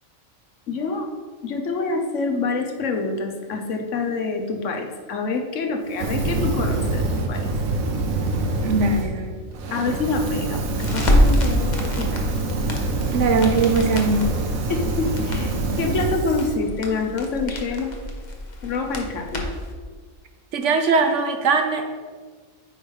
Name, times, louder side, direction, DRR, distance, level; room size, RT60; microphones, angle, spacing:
voice 1, 0.7-1.1 1.4-7.5 9.7-12.2 14.7-18.0 18.6-19.5, left 3 dB, 65° left, 4 dB, 1.2 m, -26 dB
Fire, 5.9-9.1 9.5-16.5, right 2 dB, 85° right, 1.3 m, -25 dB
voice 2, 8.6-9.3 13.1-14.3 20.5-21.8, right 3 dB, 65° right, 6 dB, 1.0 m, -20 dB
Crackle, 10.8-19.7, left 1 dB, 35° left, 1.0 m, -26 dB
8.9 x 3.5 x 5.4 m, 1.5 s
omnidirectional pair, 1.4 m